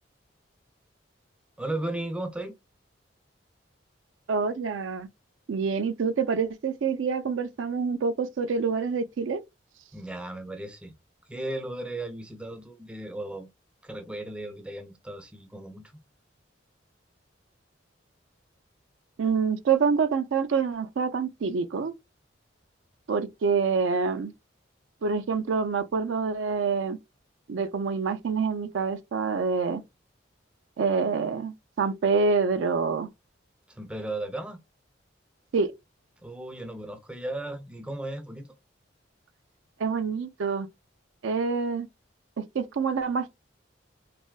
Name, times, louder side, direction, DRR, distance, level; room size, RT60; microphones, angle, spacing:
voice 1, 1.6-2.6 9.9-10.9 11.3-13.5 13.8-15.9 33.7-34.6 36.2-38.5, right 1 dB, 5° right, 0.4 m, -35 dB
voice 2, 4.3-5.1 5.5-9.4 19.2-21.9 23.1-24.3 25.0-27.0 27.5-29.8 30.8-33.1 35.5-35.7 39.8-40.7 41.2-41.9 42.4-43.3, right 5 dB, 80° right, 0.4 m, -26 dB
3.3 x 2.5 x 2.3 m
head